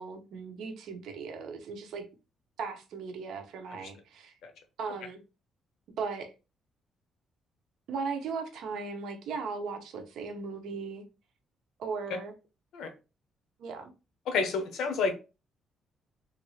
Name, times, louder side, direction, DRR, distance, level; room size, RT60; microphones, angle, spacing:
voice 1, 0.0-2.1 2.6-4.4 4.8-5.2 6.0-6.3 7.9-11.0 11.8-12.3 13.6-13.9, right 5 dB, 75° right, 0.7 m, -37 dB
voice 2, 14.3-15.1, left 4 dB, 75° left, 0.8 m, -29 dB
3.2 x 2.5 x 3.1 m
cardioid pair, 155°, 0 cm